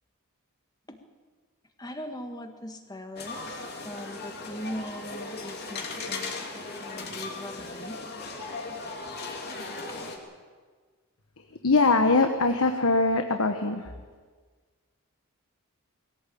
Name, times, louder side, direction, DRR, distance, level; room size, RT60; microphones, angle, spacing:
voice 1, 1.8-8.0 9.9-10.0, equal, 15° left, 6 dB, 1.6 m, -40 dB
sound 1, 3.2-10.2, left 3 dB, 45° left, 3.1 m, -37 dB
voice 2, 11.6-13.9, left 3 dB, 70° left, 6 dB, 1.3 m, -22 dB
21.5 x 17.0 x 8.6 m, 1.5 s
head